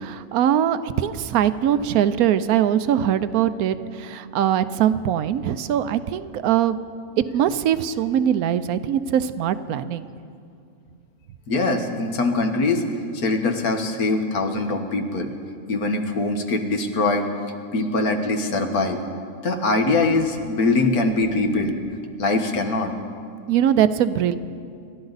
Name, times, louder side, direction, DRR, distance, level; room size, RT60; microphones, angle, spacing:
voice 1, 0.0-6.9 7.3-10.1 23.5-24.4, right 10 dB, 80° right, 13 dB, 1.1 m, -21 dB
voice 2, 11.5-12.8 13.1-15.3 15.7-17.3 17.7-19.0 19.4-21.8 22.2-22.9, left 3 dB, 80° left, 5 dB, 1.8 m, -22 dB
28.0 x 12.5 x 4.0 m, 2.4 s
omnidirectional pair, 1.5 m